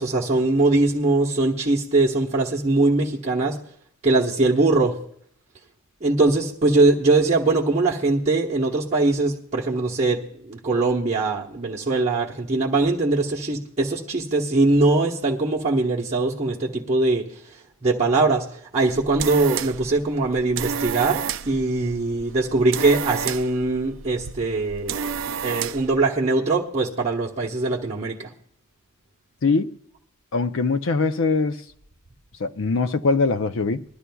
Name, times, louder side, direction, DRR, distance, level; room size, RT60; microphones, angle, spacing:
voice 1, 0.0-3.6 4.0-5.0 6.0-17.3 17.8-18.4 18.7-25.1 25.4-28.3, right 2 dB, 30° right, 1.1 m, -21 dB
sound 1, 18.9-26.0, right 7 dB, 60° right, 0.4 m, -31 dB
voice 2, 29.4-29.7 30.3-31.6 32.4-33.8, left 4 dB, 65° left, 0.6 m, -22 dB
21.0 x 12.5 x 2.3 m
head